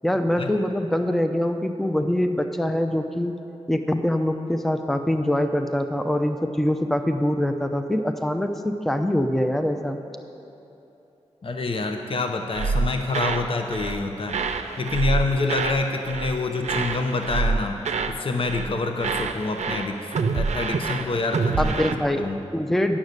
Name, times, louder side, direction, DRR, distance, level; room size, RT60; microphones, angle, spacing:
voice 1, 0.0-3.4 3.7-10.0 21.6-22.3 22.5-23.0, left 1 dB, ahead, 6 dB, 0.5 m, -24 dB
voice 2, 11.4-14.4 14.8-17.8 18.1-20.0 20.3-21.9 22.2-22.4, left 3 dB, 50° left, 4 dB, 0.7 m, -26 dB
sound 1, 12.5-13.5 13.7-14.0 14.3-15.8 16.1-16.4 16.6-18.2 18.4-18.7 19.0-21.9, right 4 dB, 75° right, 0.5 m, -27 dB
9.3 x 7.3 x 6.6 m, 2.9 s
cardioid pair, 50°, 12 cm